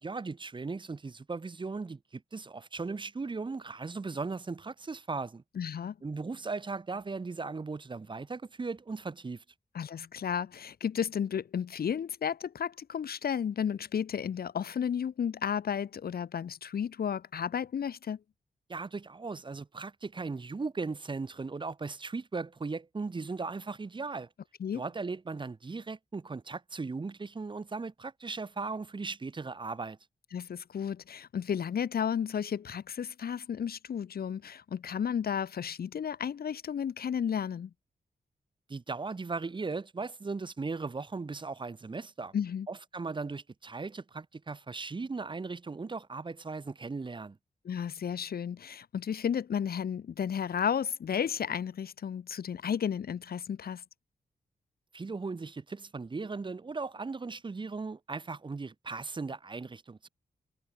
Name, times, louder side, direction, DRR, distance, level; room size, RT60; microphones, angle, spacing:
voice 1, 0.0-5.4 6.0-9.4 18.7-24.3 24.7-30.0 38.7-42.3 42.7-47.4 54.9-60.1, right 4 dB, 30° right, 4.4 m, -37 dB
voice 2, 5.5-6.0 9.7-18.2 24.6-24.8 30.3-37.7 42.3-42.7 47.6-53.8, left 8 dB, 75° left, 1.6 m, -33 dB
wide cardioid pair, 180°, 16 cm